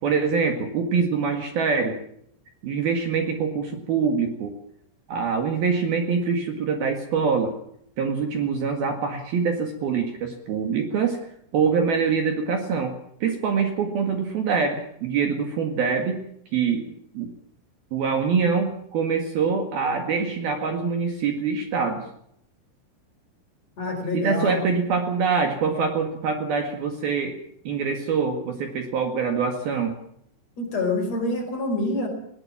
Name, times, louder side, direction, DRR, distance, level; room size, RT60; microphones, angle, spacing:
voice 1, 0.0-2.0 2.6-4.5 5.1-7.5 8.0-11.2 11.5-12.9 13.2-16.2 16.5-17.3 17.9-22.1 24.1-27.3 27.6-30.0, right 5 dB, 55° right, 5 dB, 3.3 m, -24 dB
voice 2, 23.8-24.6 30.6-32.1, left 2 dB, 35° left, 3 dB, 5.4 m, -26 dB
20.0 x 18.5 x 7.3 m, 0.71 s
omnidirectional pair, 5.8 m